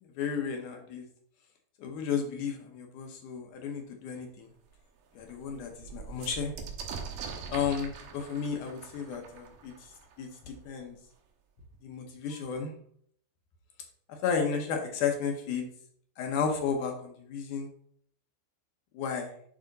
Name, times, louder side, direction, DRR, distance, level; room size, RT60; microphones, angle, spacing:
voice 1, 0.0-1.1 1.8-4.5 5.2-6.5 7.5-9.9 10.2-11.0 11.8-12.7 14.1-15.7 16.2-17.7 18.9-19.3, left 6 dB, 75° left, 3 dB, 1.8 m, -33 dB
sound 1, 4.2-4.3 4.7-4.8 5.1-10.6 11.6-11.7 11.9-12.6, right 5 dB, 70° right, 2.8 m, -43 dB
11.0 x 3.7 x 4.0 m, 0.64 s
omnidirectional pair, 4.7 m